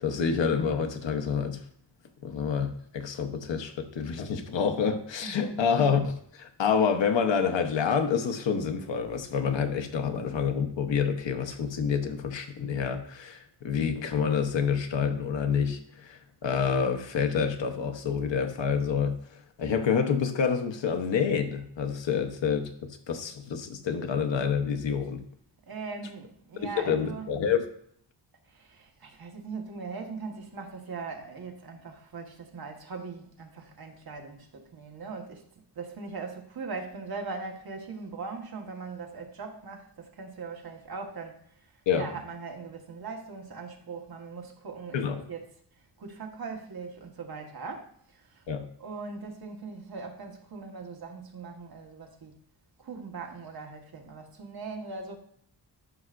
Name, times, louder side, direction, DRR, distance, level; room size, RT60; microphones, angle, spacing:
voice 1, 0.0-1.6 2.2-19.2 19.6-22.7 23.1-25.2 26.8-27.7 41.9-42.1 44.9-45.2 48.5-48.7, left 6 dB, 80° left, 1.0 m, -28 dB
voice 2, 5.2-5.6 25.7-27.3 28.5-35.4 35.7-41.4 41.9-45.5 46.0-48.4 48.8-52.4 52.8-55.2, right 4 dB, 55° right, 1.4 m, -40 dB
12.5 x 5.5 x 2.5 m
wide cardioid pair, 125°, 43 cm